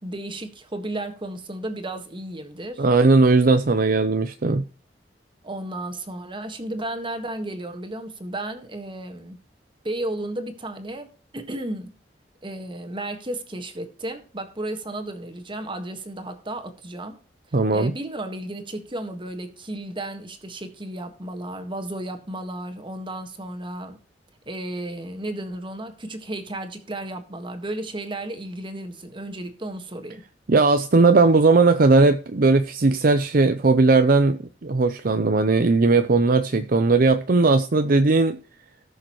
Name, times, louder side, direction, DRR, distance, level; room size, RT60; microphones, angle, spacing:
voice 1, 0.0-2.8 5.4-9.4 9.8-11.9 12.4-17.2 17.7-24.0 24.4-30.2, right 1 dB, 30° right, 1.6 m, -33 dB
voice 2, 2.8-4.6 17.5-17.9 30.5-38.4, right 3 dB, 55° right, 0.6 m, -18 dB
18.5 x 6.6 x 3.1 m
head